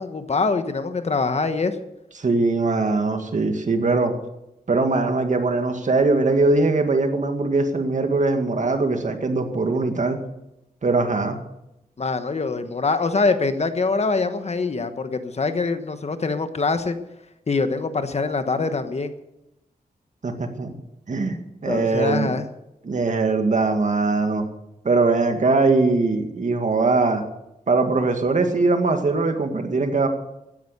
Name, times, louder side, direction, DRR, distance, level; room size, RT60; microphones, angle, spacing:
voice 1, 0.0-1.8 12.0-17.0 17.5-19.1 21.6-22.5, left 4 dB, 45° left, 9 dB, 1.2 m, -24 dB
voice 2, 2.2-4.1 4.7-10.2 10.8-11.4 20.2-20.7 21.1-21.4 21.6-22.3 22.8-24.5 24.8-27.2 27.7-30.1, right 3 dB, 50° right, 6 dB, 2.0 m, -21 dB
15.5 x 10.0 x 6.7 m, 0.90 s
wide cardioid pair, 125°, 16 cm